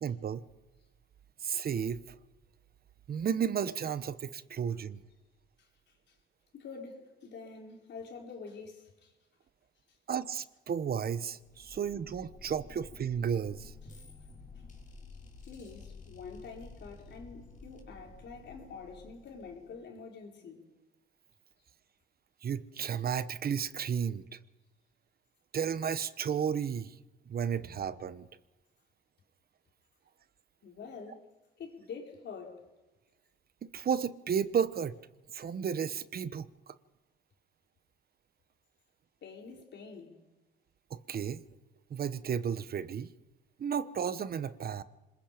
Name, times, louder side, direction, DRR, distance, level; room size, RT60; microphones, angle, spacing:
voice 1, 0.0-0.4 1.4-2.0 3.1-5.0 10.1-13.7 22.4-24.4 25.5-26.9 27.3-28.3 33.6-35.0 35.3-36.7 40.9-41.4 41.9-43.1 43.6-44.8, right 7 dB, 50° right, 1.1 m, -33 dB
voice 2, 6.5-9.1 15.5-20.6 30.6-31.2 31.6-32.6 39.2-40.2, left 5 dB, 65° left, 4.4 m, -46 dB
sound 1, 11.4-19.9, left 3 dB, 40° left, 5.5 m, -52 dB
26.0 x 21.5 x 5.1 m
cardioid pair, 90°, 20 cm